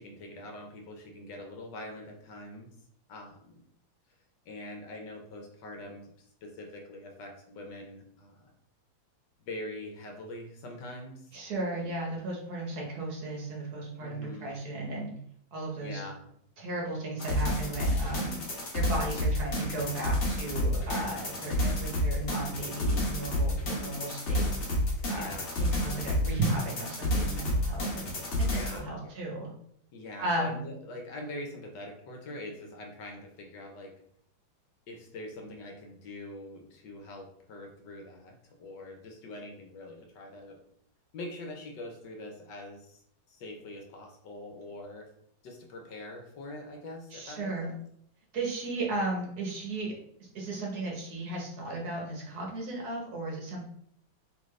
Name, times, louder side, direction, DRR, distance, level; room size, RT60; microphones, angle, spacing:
voice 1, 0.0-2.7 3.1-3.6 4.4-6.1 6.4-8.5 9.4-11.3 14.0-14.5 15.8-16.3 20.9-21.5 25.1-25.7 28.4-29.1 29.9-33.9 34.9-40.6 41.1-43.0 43.3-45.0 45.4-47.7, left 1 dB, 70° left, 2 dB, 1.3 m, -43 dB
voice 2, 11.3-15.1 15.5-16.0 16.6-18.4 18.7-24.5 25.1-29.5 30.2-30.6 47.1-47.7 48.3-49.9 50.2-53.7, right 2 dB, 60° right, -2 dB, 1.3 m, -35 dB
sound 1, 17.2-28.8, left 1 dB, 45° left, 1.1 m, -29 dB
3.8 x 3.4 x 3.1 m, 0.69 s
omnidirectional pair, 2.2 m